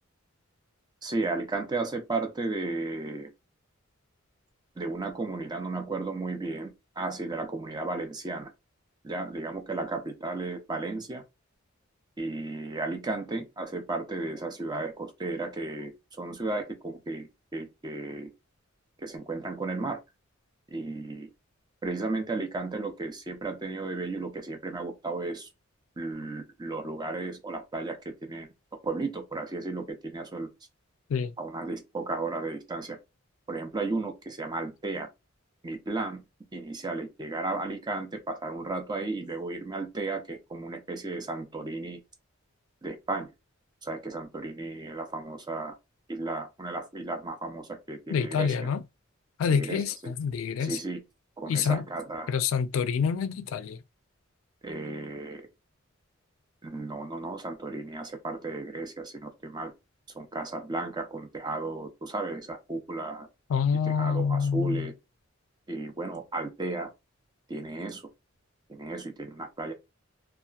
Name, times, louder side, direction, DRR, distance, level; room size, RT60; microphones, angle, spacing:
voice 1, 1.0-3.3 4.8-6.7 7.0-8.5 9.0-11.2 12.2-15.9 16.2-18.3 19.0-20.0 20.7-21.3 21.8-25.5 26.0-28.5 28.8-30.5 31.4-33.0 33.5-35.1 35.6-36.2 36.5-42.0 42.8-43.3 43.8-45.8 46.1-48.7 49.5-50.1 50.6-51.0 51.4-52.3 54.6-55.5 56.6-59.7 60.1-63.3 64.0-64.9 65.7-66.9 67.5-68.0 68.7-69.7, right 3 dB, 20° right, 0.5 m, -34 dB
voice 2, 48.1-48.8 49.4-50.8 51.5-51.9 52.3-53.8 63.5-64.9, left 6 dB, 80° left, 0.3 m, -27 dB
2.7 x 2.3 x 2.3 m
head